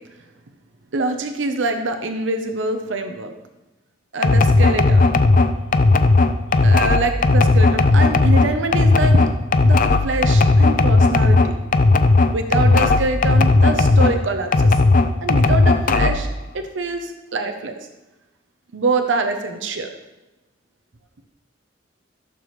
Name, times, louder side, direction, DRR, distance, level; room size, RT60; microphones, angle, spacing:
voice 1, 0.9-3.3 4.1-5.0 6.6-9.3 9.6-11.5 12.3-14.8 15.2-16.3 16.5-17.7 18.7-19.9, right 3 dB, 85° right, 6 dB, 0.8 m, -25 dB
sound 1, 4.2-14.2 14.5-16.3, left 3 dB, 45° left, 0.5 m, -15 dB
14.5 x 6.8 x 3.2 m, 1.0 s
head